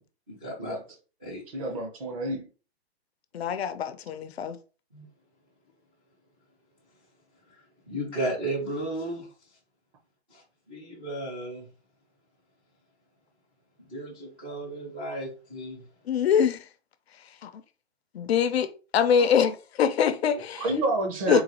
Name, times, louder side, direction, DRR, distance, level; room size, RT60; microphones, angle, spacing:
voice 1, 0.3-0.8 1.2-1.4 4.9-5.0 7.5-9.3 10.3-10.4 10.7-11.7 13.9-15.8, right 1 dB, 10° right, 0.3 m, -34 dB
voice 2, 1.5-2.5 20.6-21.4, right 2 dB, 30° right, 0.7 m, -29 dB
voice 3, 3.3-4.6 16.1-16.7 17.4-17.6 18.1-20.7 21.3-21.4, left 7 dB, 65° left, 0.5 m, -24 dB
3.9 x 2.4 x 2.9 m
hypercardioid pair, 160°, 34 cm